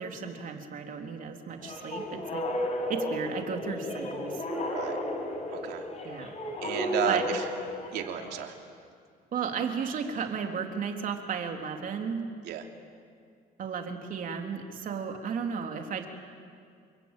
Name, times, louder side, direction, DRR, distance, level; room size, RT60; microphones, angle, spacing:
voice 1, 0.0-2.4 2.9-4.4 6.0-6.4 7.0-7.3 9.3-12.2 13.6-16.1, right 6 dB, 55° right, 3 dB, 3.3 m, -34 dB
sound 1, 1.6-8.4, left 1 dB, 40° left, 5.9 m, -34 dB
sound 2, 2.5-6.7, left 2 dB, 20° left, 4.0 m, -40 dB
voice 2, 5.5-5.8 6.6-7.4 7.9-8.6 12.4-12.6, right 10 dB, 80° right, 3 dB, 3.1 m, -32 dB
29.0 x 22.5 x 9.0 m, 2.2 s
cardioid pair, 110°, 17 cm